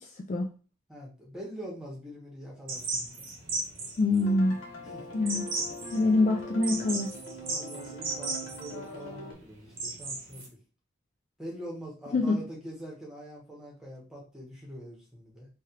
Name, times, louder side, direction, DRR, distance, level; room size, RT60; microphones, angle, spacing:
voice 1, 0.9-3.1 4.8-5.0 7.5-10.4 11.4-15.5, equal, 5° right, -4 dB, 1.0 m, -43 dB
sound 1, 2.7-10.5, right 3 dB, 80° right, 0.9 m, -36 dB
voice 2, 4.0-4.6 5.1-5.5 5.9-7.1 12.1-12.4, left 2 dB, 40° left, 2 dB, 0.3 m, -25 dB
sound 2, 4.2-9.3, equal, 70° left, 1.0 m, -42 dB
3.2 x 2.4 x 2.8 m, 0.36 s
head